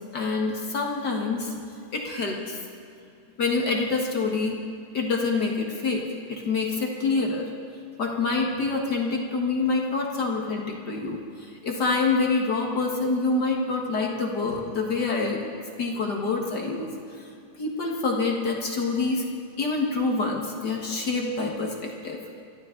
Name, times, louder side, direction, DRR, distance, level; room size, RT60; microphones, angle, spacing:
voice 1, 0.0-1.5 1.9-2.6 3.4-4.6 4.9-7.4 8.0-15.5 15.8-16.9 17.6-19.3 19.6-22.2, left 3 dB, 45° left, 0 dB, 1.5 m, -26 dB
26.0 x 12.5 x 3.8 m, 2.5 s
omnidirectional pair, 3.6 m